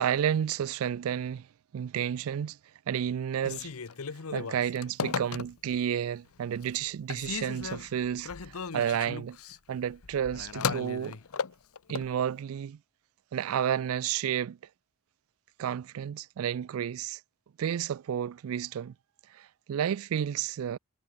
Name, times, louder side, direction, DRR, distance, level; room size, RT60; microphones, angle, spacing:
voice 1, 0.0-1.5 1.7-2.6 2.9-3.7 4.3-9.4 9.7-11.2 11.9-12.8 13.3-14.6 15.6-17.2 17.6-18.9 19.3-20.8, right 9 dB, 70° right, 0.3 m, -31 dB
Telephone, 3.4-5.8 6.3-6.8 7.1-12.1, left 5 dB, 85° left, 0.9 m, -36 dB
sound 1, 10.4-12.7, left 2 dB, 15° left, 2.4 m, -62 dB
head